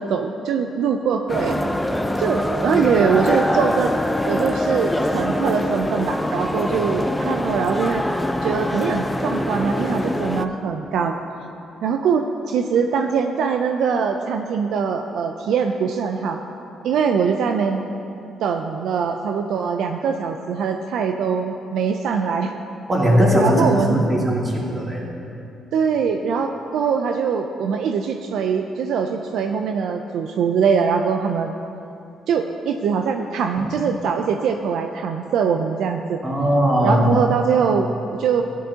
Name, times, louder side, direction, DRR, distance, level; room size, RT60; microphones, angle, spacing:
voice 1, 0.0-1.6 2.2-4.0 4.3-8.0 8.4-11.2 11.8-16.4 16.8-17.8 18.4-22.5 23.4-24.0 25.7-31.5 32.3-36.2 36.8-38.4, right 6 dB, 80° right, 5 dB, 0.4 m, -22 dB
sound 1, 1.3-10.4, left 1 dB, 10° left, 0.5 m, -23 dB
voice 2, 22.9-25.0 36.2-37.1, equal, 30° right, -5 dB, 2.8 m, -19 dB
14.5 x 10.0 x 2.8 m, 2.7 s
cardioid pair, 90°, 0 cm